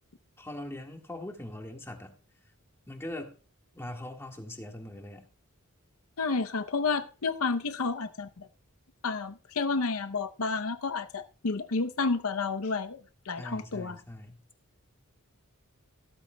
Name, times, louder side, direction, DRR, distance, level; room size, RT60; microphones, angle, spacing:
voice 1, 0.4-2.1 2.9-3.3 3.8-5.3 13.4-14.4, left 1 dB, 10° left, 1.7 m, -41 dB
voice 2, 6.2-8.5 9.0-14.0, left 4 dB, 70° left, 0.7 m, -31 dB
15.0 x 13.5 x 2.2 m
head